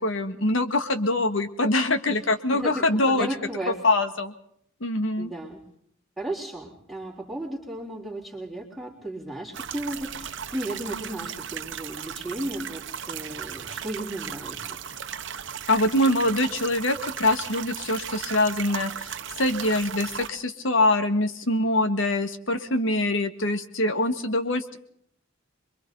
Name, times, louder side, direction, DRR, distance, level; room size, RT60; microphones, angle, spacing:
voice 1, 0.0-3.3 3.8-4.3 4.8-5.3 15.7-24.8, left 2 dB, 70° left, 9 dB, 1.8 m, -24 dB
voice 2, 2.5-3.8 5.2-5.6 6.2-14.8, right 1 dB, ahead, -3 dB, 3.8 m, -34 dB
sound 1, 9.5-20.3, right 8 dB, 60° right, 1.0 m, -36 dB
27.5 x 23.5 x 4.1 m, 0.68 s
head